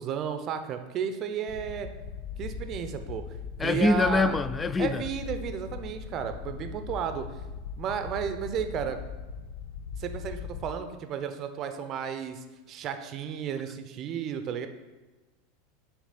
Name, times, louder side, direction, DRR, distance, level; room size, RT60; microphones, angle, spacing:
voice 1, 0.0-1.9 2.4-3.2 3.6-4.4 4.8-7.3 7.8-9.0 10.0-14.7, right 8 dB, 45° right, 0.6 m, -33 dB
sound 1, 1.5-10.7, left 6 dB, 65° left, 0.6 m, -39 dB
voice 2, 3.6-5.0, left 3 dB, 20° left, 0.3 m, -24 dB
6.2 x 3.3 x 5.8 m
hypercardioid pair, 95°, 0 cm